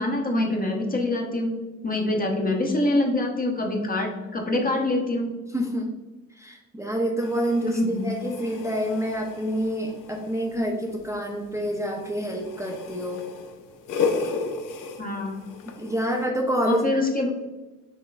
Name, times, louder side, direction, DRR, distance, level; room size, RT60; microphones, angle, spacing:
voice 1, 0.0-1.6 1.8-5.3 7.7-8.0 15.0-15.4 16.6-17.3, left 2 dB, 20° left, 1 dB, 1.0 m, -25 dB
voice 2, 5.5-5.9 6.4-13.2 15.8-16.8, equal, 5° right, -2 dB, 0.7 m, -27 dB
sound 1, 7.2-16.3, left 5 dB, 50° left, 0.6 m, -34 dB
6.2 x 3.0 x 2.3 m, 1.2 s
hypercardioid pair, 45°, 39 cm